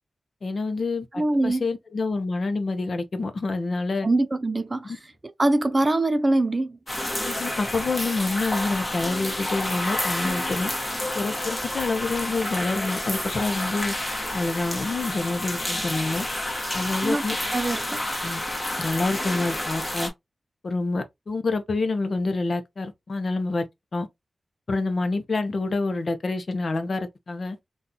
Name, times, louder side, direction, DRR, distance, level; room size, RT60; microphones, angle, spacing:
voice 1, 0.4-4.1 7.2-10.7 11.1-13.9 14.3-16.3 16.7-17.4 18.2-18.4 18.8-20.1 20.6-23.6 23.9-24.1 24.7-27.6, left 3 dB, 55° left, 0.6 m, -27 dB
voice 2, 1.2-1.6 4.0-4.9 5.4-6.8 17.0-17.2 17.5-18.0, right 2 dB, 30° right, 0.3 m, -23 dB
sound 1, 6.9-20.1, left 1 dB, 20° left, 1.1 m, -29 dB
3.8 x 2.4 x 2.7 m
wide cardioid pair, 115°, 0 cm